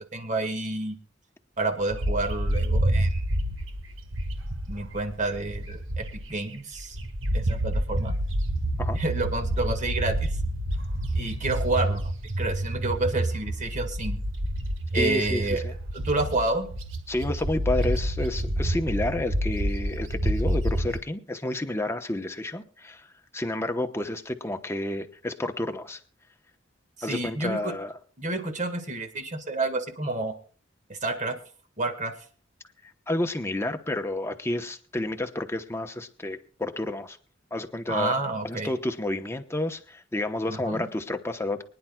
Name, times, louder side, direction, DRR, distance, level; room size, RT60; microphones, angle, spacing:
voice 1, 0.1-1.0 1.6-3.2 4.7-7.0 7.3-8.1 9.0-10.4 11.2-12.1 12.4-14.2 14.9-15.6 15.9-16.7 27.0-27.7 28.2-30.3 30.9-31.4 31.8-32.1 37.9-38.7 40.5-40.9, right 2 dB, 40° right, 6 dB, 1.8 m, -29 dB
Bird, 1.9-6.4 6.8-21.0, right 1 dB, 75° right, 1.5 m, -28 dB
voice 2, 14.9-15.7 17.1-23.1 23.3-26.0 27.0-27.9 32.8-37.2 37.5-38.1 38.4-41.6, left 1 dB, 15° left, 6 dB, 1.0 m, -30 dB
24.5 x 10.5 x 2.3 m, 0.40 s
head